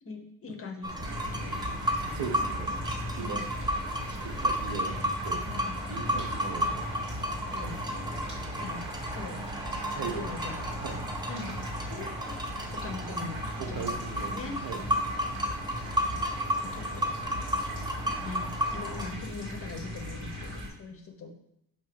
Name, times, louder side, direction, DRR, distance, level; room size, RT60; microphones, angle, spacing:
voice 1, 0.0-1.6 3.2-3.6 5.4-6.2 7.5-8.3 8.6-8.8 9.1-9.4 10.0-10.7 11.3-14.6 16.6-17.1 18.1-21.3, left 4 dB, 40° left, 4 dB, 0.9 m, -42 dB
sound 1, 0.8-19.1, equal, 10° right, 0.5 m, -33 dB
sound 2, 1.0-20.7, equal, 35° right, 2.0 m, -39 dB
voice 2, 2.1-2.7 3.2-3.4 4.1-5.4 5.9-6.8 9.8-10.3 10.7-11.1 13.6-14.8, right 6 dB, 75° right, 5 dB, 1.0 m, -38 dB
6.3 x 3.0 x 5.1 m, 0.80 s
cardioid pair, 145°, 36 cm